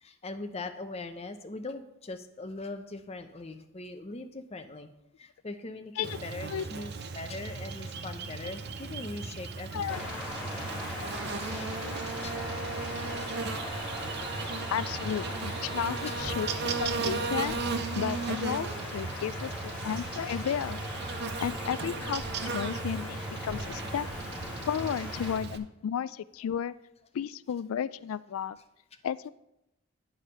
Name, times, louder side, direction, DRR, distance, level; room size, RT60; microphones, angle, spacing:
voice 1, 0.0-4.9 5.2-10.1 11.2-11.7 12.0-12.3 12.9-13.3 16.1-16.2 21.6-21.7, left 2 dB, 30° left, 7 dB, 0.6 m, -41 dB
Buzz, 6.0-25.6, right 4 dB, 50° right, 0.6 m, -36 dB
voice 2, 9.7-10.1 11.0-11.1 14.7-17.6 17.9-20.8 21.4-24.1 24.7-26.7 27.1-28.6 29.0-29.3, left 8 dB, 75° left, 18 dB, 0.3 m, -33 dB
sound 1, 9.9-25.4, left 1 dB, 5° right, 2.3 m, -39 dB
9.9 x 4.8 x 5.4 m, 0.88 s
head